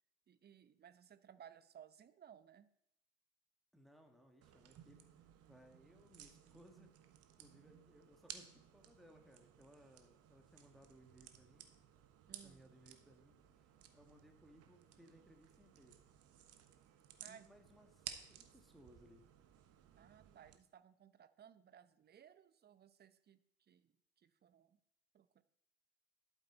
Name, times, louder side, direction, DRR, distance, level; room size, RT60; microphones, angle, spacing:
voice 1, 0.3-2.7 12.3-12.6 17.2-17.5 20.0-24.8 25.1-25.4, right 9 dB, 35° right, 14 dB, 0.8 m, -61 dB
voice 2, 3.7-6.9 7.3-11.7 12.4-15.9 17.2-19.3, equal, ahead, 3 dB, 2.0 m, -65 dB
sound 1, 4.4-20.6, right 9 dB, 55° right, 1.2 m, -58 dB
11.5 x 8.2 x 4.1 m, 0.77 s
hypercardioid pair, 60°, 30 cm